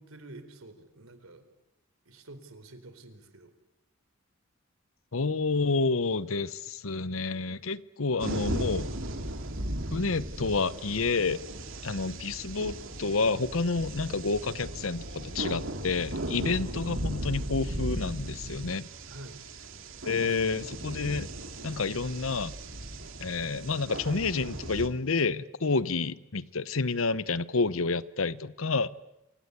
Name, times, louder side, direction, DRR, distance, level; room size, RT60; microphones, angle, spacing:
voice 1, 0.0-1.4 2.1-3.5 19.1-19.4 20.3-20.4, right 2 dB, 90° right, 10 dB, 4.1 m, -48 dB
voice 2, 5.1-8.9 9.9-11.4 11.8-18.9 20.1-21.3 21.6-22.6 23.2-28.9, left 4 dB, 80° left, 17 dB, 0.9 m, -29 dB
sound 1, 8.2-24.9, right 1 dB, 70° right, 2.7 m, -37 dB
27.5 x 25.0 x 8.2 m, 0.92 s
head